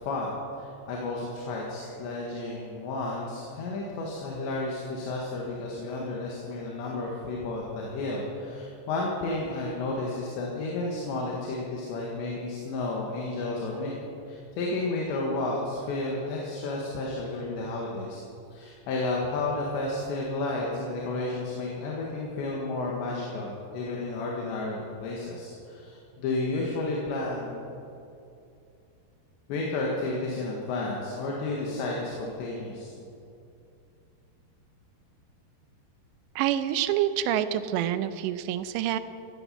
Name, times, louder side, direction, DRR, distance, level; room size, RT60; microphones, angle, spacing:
voice 1, 0.0-14.0 14.3-18.2 18.5-27.7 29.5-33.1, left 2 dB, 85° left, -2 dB, 4.0 m, -32 dB
voice 2, 36.4-39.0, right 11 dB, 85° right, 12 dB, 2.9 m, -27 dB
16.0 x 15.5 x 5.7 m, 2.6 s
omnidirectional pair, 5.0 m